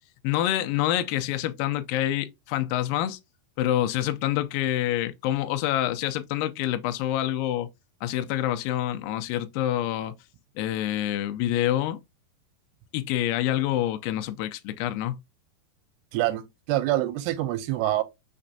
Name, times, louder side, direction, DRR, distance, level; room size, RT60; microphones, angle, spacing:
voice 1, 0.2-3.2 3.6-7.7 8.0-10.1 10.6-12.0 12.9-15.2, left 13 dB, 80° left, 2.1 m, -27 dB
voice 2, 16.1-18.0, right 15 dB, 90° right, 2.7 m, -26 dB
6.0 x 3.2 x 2.7 m
omnidirectional pair, 4.6 m